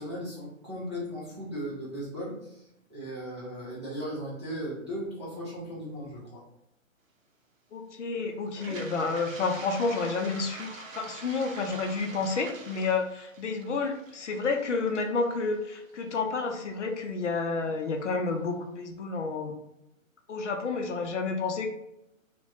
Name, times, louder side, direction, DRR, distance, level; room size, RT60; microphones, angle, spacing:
voice 1, 0.0-2.6 2.9-6.4, equal, 20° right, -8 dB, 0.4 m, -37 dB
voice 2, 7.7-19.5 20.3-21.7, left 4 dB, 60° left, 4 dB, 0.5 m, -30 dB
Toilet flush, 8.5-16.4, right 3 dB, 70° right, 0.7 m, -45 dB
2.7 x 2.2 x 2.6 m, 0.83 s
hypercardioid pair, 145°, 41 cm